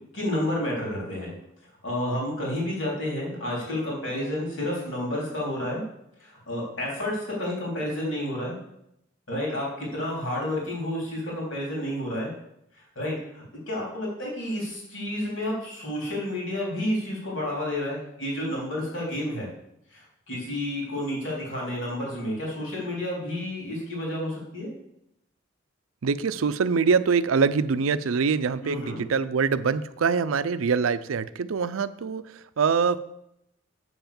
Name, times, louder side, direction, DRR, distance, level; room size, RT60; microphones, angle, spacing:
voice 1, 0.1-1.3 1.8-5.8 6.2-8.6 9.3-12.3 12.7-19.5 19.9-24.7 28.6-29.0, left 1 dB, 70° left, -3 dB, 3.6 m, -30 dB
voice 2, 26.0-33.0, right 5 dB, 90° right, 14 dB, 0.5 m, -24 dB
7.9 x 5.8 x 7.0 m, 0.79 s
head